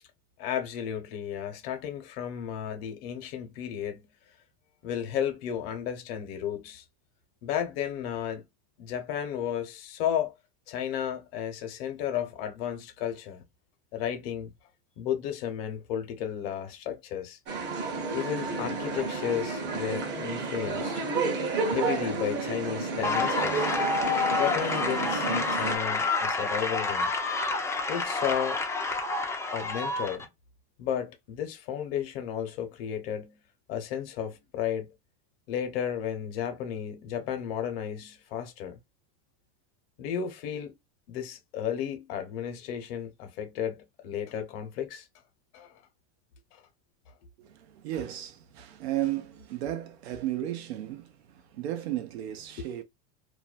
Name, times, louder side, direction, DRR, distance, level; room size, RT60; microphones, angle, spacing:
voice 1, 0.4-4.1 4.8-6.8 7.4-8.4 8.8-10.3 10.7-13.4 13.9-14.5 15.0-17.4 18.1-21.0 21.7-23.7 24.3-27.1 27.9-28.6 29.5-30.3 30.8-33.4 33.7-34.9 35.5-38.8 40.0-40.8 41.1-45.1 45.5-45.8 46.5-46.6, left 9 dB, 65° left, 1.0 m, -33 dB
sound 1, 17.5-25.8, right 4 dB, 35° right, 0.8 m, -31 dB
sound 2, 23.0-30.2, left 3 dB, 10° left, 0.4 m, -29 dB
voice 2, 47.4-52.8, right 13 dB, 90° right, 0.7 m, -34 dB
2.6 x 2.2 x 2.4 m
supercardioid pair, 135°, 31 cm